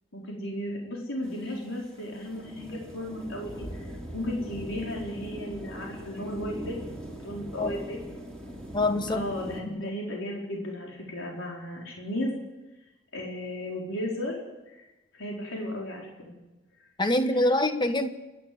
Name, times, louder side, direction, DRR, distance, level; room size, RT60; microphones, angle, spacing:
voice 1, 0.1-8.0 9.1-12.3 13.1-14.4 14.7-14.8 15.1-16.4 17.3-17.5, left 1 dB, 70° left, -2 dB, 4.5 m, -35 dB
sound 1, 1.2-9.6, equal, 5° left, 3.4 m, -41 dB
voice 2, 8.7-9.2 9.7-9.9 17.0-18.1, left 1 dB, 20° left, 8 dB, 1.3 m, -25 dB
28.5 x 12.0 x 7.8 m, 1.1 s
head